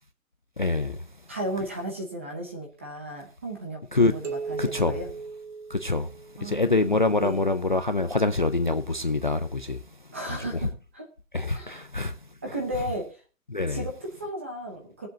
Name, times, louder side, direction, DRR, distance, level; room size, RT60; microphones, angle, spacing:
voice 1, 0.6-1.0 3.9-4.1 4.6-5.0 5.7-6.1 6.4-9.8 10.3-10.4 11.3-12.1 13.5-13.8, left 3 dB, 35° left, 0.4 m, -25 dB
voice 2, 1.3-5.1 6.4-7.4 10.1-11.1 11.5-11.8 12.4-13.2 13.7-15.1, right 1 dB, 10° right, 0.7 m, -35 dB
sound 1, 4.2-6.7, right 4 dB, 60° right, 2.1 m, -37 dB
19.5 x 7.6 x 2.8 m
hypercardioid pair, 180°, 42 cm